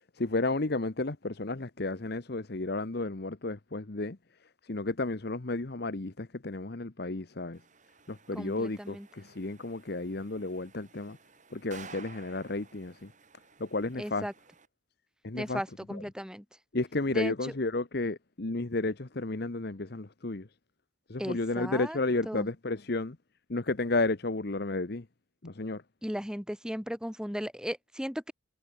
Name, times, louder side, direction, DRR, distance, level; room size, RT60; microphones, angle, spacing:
voice 1, 0.1-4.2 4.6-7.6 8.1-11.2 11.5-13.1 13.6-14.3 15.2-15.6 15.9-16.0 16.7-20.5 21.1-23.2 23.5-25.1 25.4-25.8, left 2 dB, 50° left, 1.0 m, -32 dB
sound 1, 7.5-14.7, right 5 dB, 40° right, 4.9 m, -54 dB
voice 2, 8.3-9.1 14.0-14.3 15.3-16.5 17.1-17.5 21.2-22.0 22.3-22.5 26.0-28.3, equal, 5° right, 3.5 m, -36 dB
head